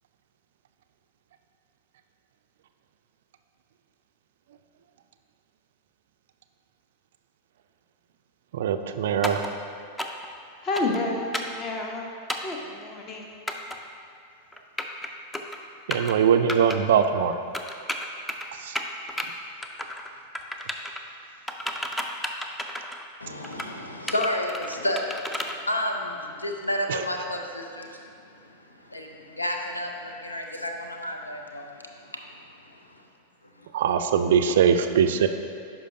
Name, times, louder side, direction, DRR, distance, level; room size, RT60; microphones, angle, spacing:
voice 1, 8.5-9.4 15.9-17.4 18.6-18.8 26.9-27.0 33.7-35.3, right 7 dB, 60° right, 8 dB, 0.3 m, -21 dB
sound 1, 9.2-9.5 10.0-10.3 10.7-11.0 11.3-11.6 12.3-12.6 13.5-13.8 14.5-15.1 15.3-15.6 15.9-16.1 16.5-16.8 17.5-18.5 18.8-19.3 19.6-20.1 20.3-21.0 21.5-23.0 23.4-23.7 24.1-25.5, left 1 dB, 5° left, 0.4 m, -32 dB
voice 2, 10.6-12.1 12.4-13.4, left 2 dB, 30° left, 1 dB, 0.9 m, -30 dB
voice 3, 23.2-28.1 28.5-32.2 32.7-32.8, left 1 dB, 80° left, 3 dB, 0.6 m, -31 dB
11.0 x 4.8 x 2.7 m, 2.3 s
figure-of-eight pair, 90°, 0 cm